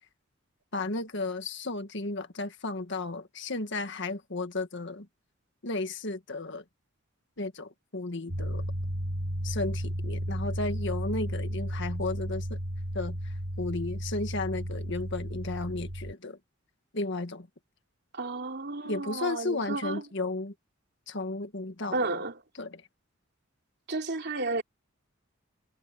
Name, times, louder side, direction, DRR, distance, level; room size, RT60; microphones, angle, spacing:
voice 1, 0.7-5.1 5.6-6.6 7.4-8.6 9.4-12.6 12.9-16.4 16.9-17.5 18.9-20.5 21.1-22.2 22.6-22.9, left 2 dB, 60° left, 1.8 m, -34 dB
sound 1, 8.3-16.1, equal, 85° right, 5.4 m, -33 dB
voice 2, 18.1-20.0 21.9-22.3 23.9-24.6, right 3 dB, 55° right, 3.5 m, -32 dB
head